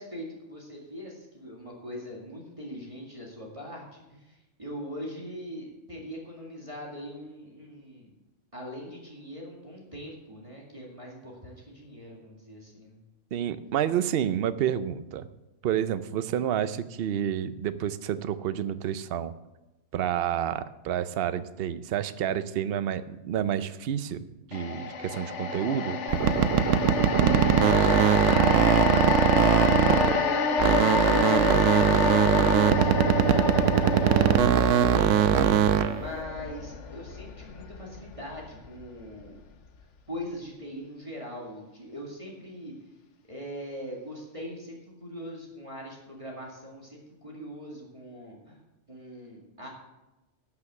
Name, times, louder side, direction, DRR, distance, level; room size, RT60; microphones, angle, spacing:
voice 1, 0.0-8.1 8.5-13.0 27.6-35.4 35.9-39.5 40.1-42.7 43.3-48.6 48.9-49.7, equal, 25° right, -3 dB, 2.2 m, -41 dB
voice 2, 13.3-15.3 15.6-19.3 19.9-24.2 24.5-26.0, right 10 dB, 60° right, 13 dB, 0.8 m, -29 dB
sound 1, 24.5-38.9 39.2-39.4, left 4 dB, 70° left, 1.1 m, -28 dB
sound 2, 26.1-30.3 30.6-36.0, right 9 dB, 85° right, 1.0 m, -21 dB
12.0 x 5.9 x 7.7 m, 1.0 s
omnidirectional pair, 1.3 m